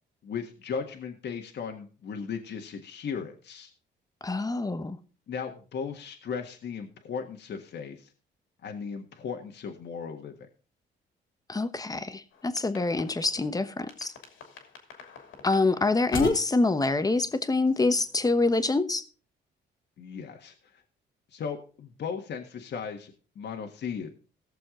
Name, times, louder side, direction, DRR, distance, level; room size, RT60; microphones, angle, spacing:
voice 1, 0.2-3.7 5.3-8.1 8.6-10.3 20.0-20.8 21.3-24.1, left 6 dB, 60° left, 1.7 m, -36 dB
voice 2, 4.2-5.0 11.5-14.1 15.4-19.0, left 3 dB, 20° left, 1.1 m, -26 dB
sound 1, 12.3-13.5 13.9-18.7, left 5 dB, 80° left, 2.9 m, -41 dB
18.0 x 6.9 x 3.8 m
cardioid pair, 90°, 20 cm